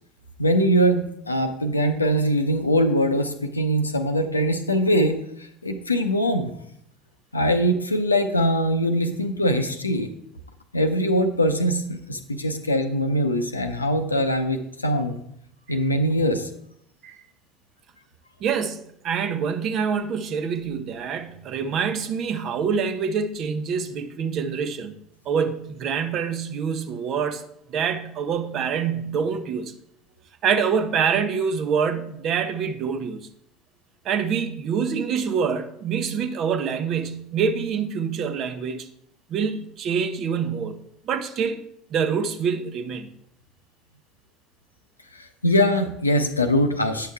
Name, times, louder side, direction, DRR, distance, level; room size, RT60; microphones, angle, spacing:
voice 1, 0.4-5.2 5.6-6.5 7.3-10.1 10.7-15.2 15.7-16.5 45.1-47.1, equal, 85° left, 0.7 m, -22 dB
voice 2, 18.4-24.9 25.3-27.4 27.7-29.7 30.4-33.3 34.0-38.9 39.3-40.8 41.1-41.6 41.9-43.1, right 6 dB, 45° right, 0.8 m, -26 dB
9.3 x 6.7 x 3.5 m
figure-of-eight pair, 70°, 0 cm